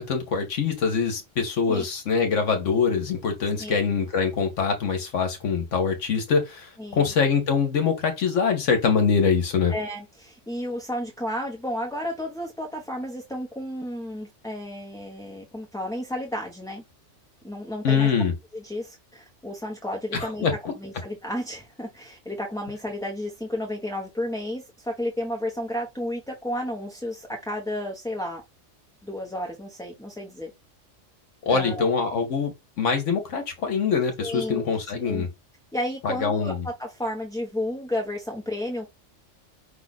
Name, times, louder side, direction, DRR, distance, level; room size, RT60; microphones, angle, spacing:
voice 1, 0.0-9.7 17.8-18.3 20.1-20.7 31.4-35.3 36.0-36.6, left 5 dB, 75° left, 1.3 m, -24 dB
voice 2, 3.6-4.0 6.8-7.1 9.7-16.8 17.4-18.1 18.5-20.5 20.8-28.4 29.0-30.5 31.5-31.8 34.2-34.6 35.0-35.3 35.7-38.9, left 1 dB, 5° left, 0.7 m, -32 dB
5.5 x 2.4 x 4.0 m
omnidirectional pair, 1.3 m